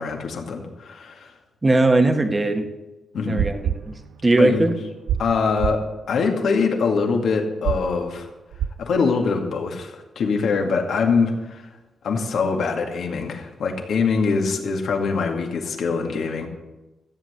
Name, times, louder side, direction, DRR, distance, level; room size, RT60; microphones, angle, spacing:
voice 1, 0.0-1.3 3.1-3.4 4.4-4.7 5.2-8.3 8.8-11.6 12.0-16.5, left 4 dB, 75° left, 2 dB, 2.2 m, -23 dB
voice 2, 1.6-2.7 3.3-3.9 4.2-4.7, right 2 dB, 25° right, 6 dB, 1.6 m, -19 dB
sound 1, 3.2-4.6 4.9-5.3 5.6-5.8 7.6-7.9 8.5-8.8, right 9 dB, 85° right, 0.5 m, -27 dB
14.5 x 8.1 x 8.1 m, 1.1 s
cardioid pair, 85°, 0 cm